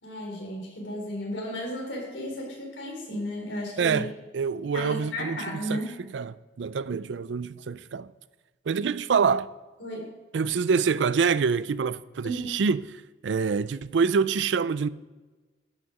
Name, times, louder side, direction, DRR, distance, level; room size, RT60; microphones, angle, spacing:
voice 1, 0.0-4.0 4.7-5.9 9.8-10.1 12.2-12.5, equal, 75° left, 4.0 m, -34 dB
voice 2, 3.8-8.1 8.7-9.5 10.3-14.9, right 5 dB, 70° right, 0.4 m, -26 dB
11.5 x 6.3 x 6.0 m
head